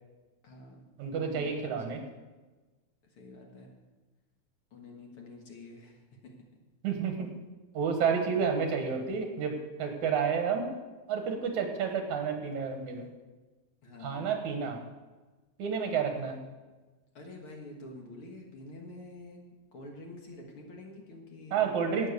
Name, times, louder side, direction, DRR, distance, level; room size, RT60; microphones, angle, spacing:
voice 1, 0.4-0.9 1.2-2.0 3.0-3.7 4.7-6.3 13.8-14.3 17.1-19.4 19.7-21.8, left 2 dB, 50° left, 1 dB, 2.2 m, -48 dB
voice 2, 1.0-2.0 6.8-7.3 7.7-10.7 11.1-13.1 14.0-14.8 15.6-16.4 21.5-22.1, right 6 dB, 75° right, 5 dB, 2.8 m, -30 dB
12.0 x 8.8 x 6.7 m, 1.2 s
omnidirectional pair, 3.5 m